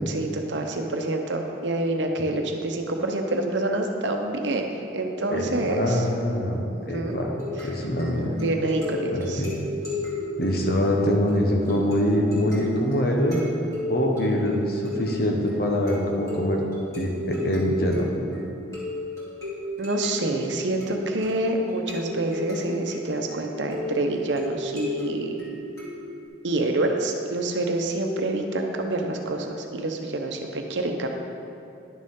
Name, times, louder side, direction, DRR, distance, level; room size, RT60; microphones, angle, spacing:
voice 1, 0.1-6.1 6.7-7.2 7.6-7.7 8.3-9.4 19.8-25.3 26.4-31.1, right 2 dB, 80° right, 3 dB, 0.8 m, -27 dB
voice 2, 5.3-6.6 6.9-7.3 7.6-8.3 9.1-9.5 10.4-13.4 13.9-16.6 17.0-18.1, equal, 55° left, 1 dB, 1.0 m, -24 dB
sound 1, 7.1-26.3, left 1 dB, 15° left, 2.3 m, -34 dB
10.5 x 6.6 x 3.7 m, 2.6 s
head